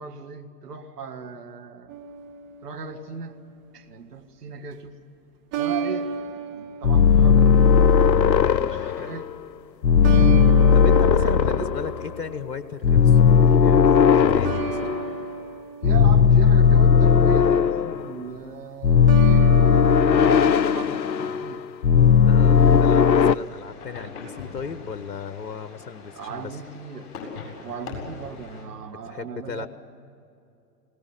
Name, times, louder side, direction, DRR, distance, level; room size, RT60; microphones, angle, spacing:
voice 1, 0.0-2.0 2.6-3.4 3.7-5.0 5.5-8.0 8.6-9.3 10.0-11.7 15.8-19.6 19.9-21.7 26.1-27.1 27.6-29.7, right 6 dB, 70° right, 6 dB, 2.0 m, -37 dB
sound 1, 1.9-3.2 5.5-8.0 10.0-12.6 14.4-17.0 19.1-21.4, right 6 dB, 25° right, 1.2 m, -33 dB
sound 2, 6.8-9.3 9.8-12.3 12.8-15.2 15.8-18.1 18.8-21.6 21.8-23.3, left 6 dB, 90° left, 0.6 m, -17 dB
voice 2, 8.4-9.1 10.7-14.9 22.2-26.5 28.9-29.7, left 6 dB, 65° left, 12 dB, 1.2 m, -36 dB
sound 3, 22.5-28.6, left 4 dB, 40° left, 7.6 m, -41 dB
21.0 x 18.5 x 9.9 m, 2.6 s
figure-of-eight pair, 110°, 49 cm